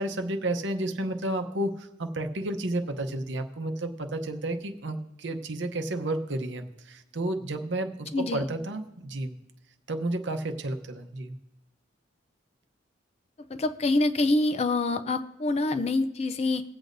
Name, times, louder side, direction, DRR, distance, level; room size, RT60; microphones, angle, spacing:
voice 1, 0.0-9.3 9.9-11.4, right 1 dB, 65° right, 6 dB, 0.8 m, -31 dB
voice 2, 8.1-8.5 13.5-16.6, left 2 dB, 30° left, 10 dB, 0.4 m, -26 dB
20.0 x 8.2 x 2.6 m, 0.93 s
head